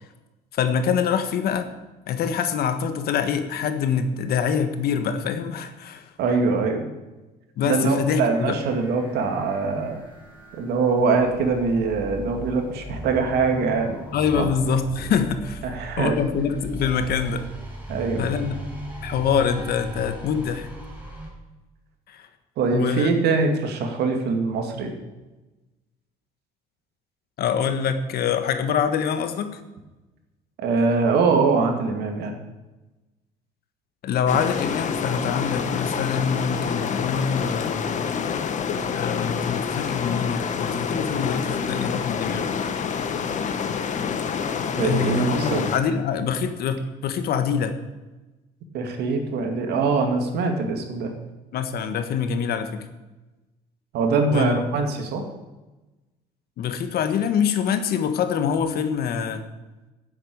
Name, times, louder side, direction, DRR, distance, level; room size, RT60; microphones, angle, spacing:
voice 1, 0.5-1.7 2.1-6.1 7.6-8.6 14.1-15.7 16.0-17.5 18.2-18.6 19.0-20.7 22.1-22.3 22.7-23.1 27.4-29.6 34.0-37.9 38.9-42.5 44.8-47.7 51.5-52.9 54.3-54.5 56.6-59.4, left 7 dB, 65° left, 9 dB, 1.4 m, -25 dB
voice 2, 6.2-6.9 7.6-10.0 10.5-14.0 14.3-14.5 15.6-16.1 17.9-18.3 22.6-24.9 30.6-32.4 44.7-45.7 48.7-51.1 53.9-55.2, right 4 dB, 75° right, 4 dB, 2.3 m, -23 dB
sound 1, 8.3-21.3, right 1 dB, 10° right, 4.6 m, -38 dB
sound 2, 34.3-45.8, left 6 dB, 45° left, 1.2 m, -27 dB
9.9 x 8.1 x 8.6 m, 1.1 s
cardioid pair, 110°, 17 cm